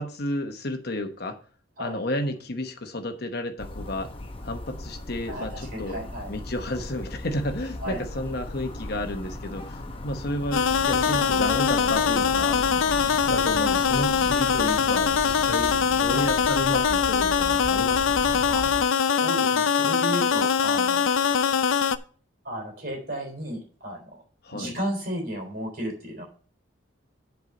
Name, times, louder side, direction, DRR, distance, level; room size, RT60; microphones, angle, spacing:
voice 1, 0.0-1.4 1.8-4.1 4.4-6.0 6.3-12.6 13.2-18.0 24.4-24.7, left 1 dB, 50° left, 5 dB, 1.1 m, -31 dB
sound 1, 3.6-18.9, left 1 dB, 25° left, 0.8 m, -37 dB
voice 2, 5.3-6.3 7.8-8.0 16.1-16.3 18.5-18.6 19.0-21.1 22.4-24.0 24.5-26.2, equal, 45° right, -1 dB, 3.9 m, -34 dB
sound 2, 10.5-22.0, left 7 dB, 75° left, 0.5 m, -22 dB
8.0 x 4.6 x 6.6 m, 0.41 s
head